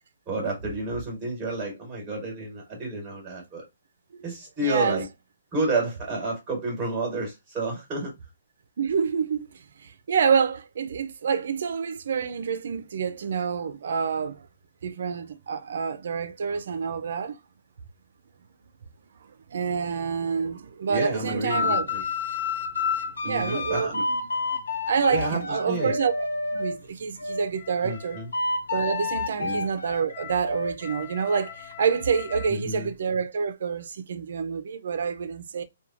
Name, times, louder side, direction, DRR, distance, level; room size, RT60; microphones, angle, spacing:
voice 1, 0.3-3.6 4.2-5.1 5.5-8.1 20.9-22.0 23.2-24.0 25.1-25.9 27.8-28.3 29.4-29.7 32.5-32.9, right 2 dB, 10° right, 1.2 m, -30 dB
voice 2, 4.6-5.0 8.8-14.5 14.8-17.4 19.2-21.9 23.2-24.0 24.5-28.2 28.7-35.6, right 6 dB, 60° right, 0.4 m, -28 dB
sound 1, 21.5-26.8 27.2-32.5, left 4 dB, 85° left, 0.7 m, -30 dB
2.9 x 2.2 x 2.4 m
hypercardioid pair, 170°, 0 cm